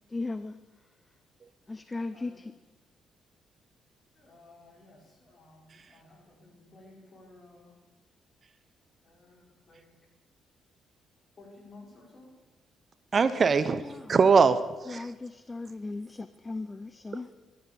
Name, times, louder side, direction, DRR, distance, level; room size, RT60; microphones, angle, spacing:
voice 1, 0.1-0.6 1.7-2.5 13.7-14.2 14.9-17.3, left 3 dB, 20° left, 13 dB, 0.6 m, -37 dB
voice 2, 2.0-2.4 4.2-7.8 9.0-9.9 11.4-12.3, left 2 dB, 40° left, 0 dB, 5.2 m, -55 dB
voice 3, 13.1-15.1, right 5 dB, 40° right, 13 dB, 0.8 m, -22 dB
13.5 x 12.0 x 6.9 m, 1.2 s
cardioid pair, 90°, 0 cm